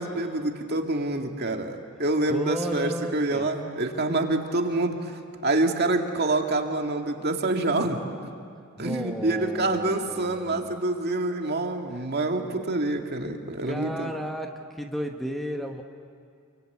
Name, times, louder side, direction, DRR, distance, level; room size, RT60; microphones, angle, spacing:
voice 1, 0.0-8.0 8.8-14.1, right 2 dB, 50° right, 3 dB, 2.1 m, -27 dB
voice 2, 2.3-3.5 8.8-10.8 13.6-15.8, equal, ahead, 3 dB, 1.1 m, -33 dB
28.0 x 24.5 x 8.4 m, 2.4 s
head